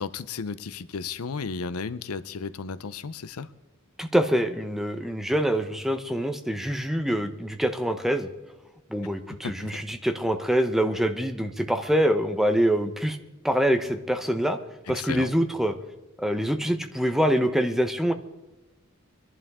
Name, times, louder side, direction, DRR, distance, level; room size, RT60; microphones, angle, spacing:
voice 1, 0.0-3.5 9.4-9.7 14.9-15.3, left 5 dB, 90° left, 15 dB, 0.6 m, -34 dB
voice 2, 4.0-8.3 8.9-13.2 13.4-14.6 14.9-15.8 16.2-18.1, equal, ahead, 7 dB, 0.9 m, -25 dB
24.0 x 11.5 x 3.6 m, 1.0 s
head